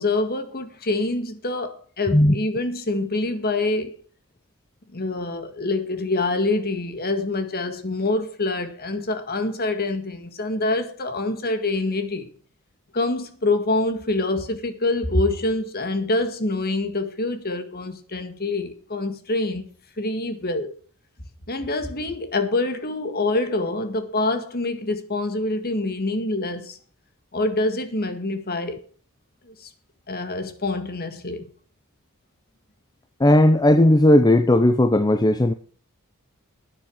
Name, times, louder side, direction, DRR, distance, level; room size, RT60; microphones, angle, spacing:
voice 1, 0.0-3.9 4.9-12.3 12.9-19.7 20.0-20.7 21.5-26.8 27.3-28.8 29.5-29.7 30.1-31.5, left 2 dB, 45° left, 1.8 m, -25 dB
voice 2, 33.2-35.5, left 1 dB, 20° left, 0.6 m, -16 dB
12.0 x 9.8 x 6.3 m
head